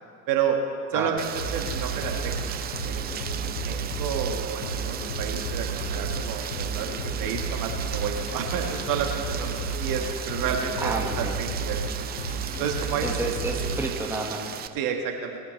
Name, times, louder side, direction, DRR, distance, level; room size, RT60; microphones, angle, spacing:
voice 1, 0.3-0.6 0.9-2.5 2.8-11.8 12.6-13.2 14.7-15.4, right 7 dB, 45° right, 3 dB, 1.6 m, -30 dB
Rain, 1.2-14.7, right 10 dB, 20° right, 0.5 m, -36 dB
sound 1, 1.4-14.0, right 3 dB, 90° left, 1.5 m, -32 dB
voice 2, 10.8-11.4 13.0-14.6, right 2 dB, 5° right, 0 dB, 1.6 m, -30 dB
21.0 x 9.6 x 3.2 m, 2.3 s
hypercardioid pair, 90°, 46 cm